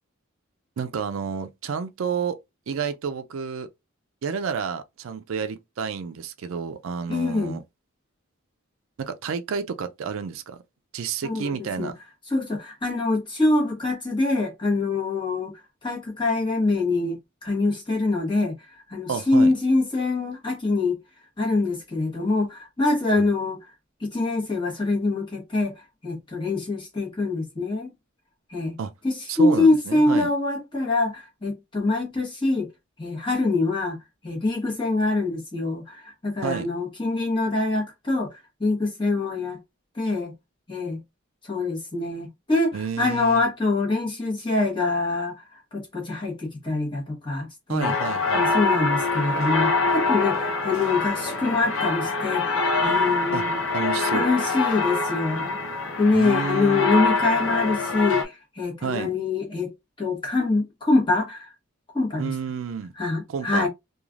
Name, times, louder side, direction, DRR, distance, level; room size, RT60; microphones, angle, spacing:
voice 1, 0.8-2.4 2.7-3.7 4.2-7.6 9.0-10.6 10.9-12.0 19.1-19.5 28.8-28.9 29.3-30.3 36.4-36.7 42.7-43.4 47.7-48.4 53.3-53.4 53.7-54.3 56.1-56.9 58.8-59.2 62.2-62.9 63.3-63.7, right 6 dB, 80° right, 0.4 m, -30 dB
voice 2, 7.1-7.6 11.2-11.9 12.3-15.5 15.8-18.5 18.9-21.0 21.4-23.6 24.0-25.7 26.0-27.9 28.5-28.8 29.0-32.7 33.0-34.0 34.2-39.6 39.9-40.3 40.7-41.0 41.4-47.9 48.3-53.6 54.1-55.6 56.0-59.7 60.0-61.5 61.9-62.3 63.0-63.7, left 3 dB, 25° left, 1.1 m, -24 dB
sound 1, 47.8-58.2, left 3 dB, 75° left, 0.6 m, -24 dB
3.1 x 2.3 x 2.4 m
head